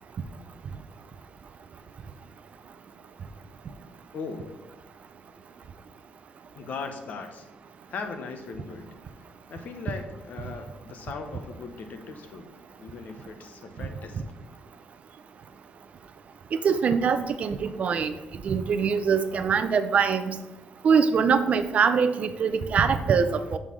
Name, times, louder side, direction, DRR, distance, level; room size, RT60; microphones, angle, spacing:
voice 1, 4.1-4.5 6.5-7.5 7.9-8.9 9.5-12.5 12.8-14.2, left 4 dB, 55° left, 7 dB, 1.0 m, -38 dB
voice 2, 16.6-18.1 18.4-20.4 20.8-23.6, right 6 dB, 45° right, 10 dB, 0.6 m, -23 dB
6.4 x 5.6 x 6.2 m, 1.0 s
cardioid pair, 160°, 3 cm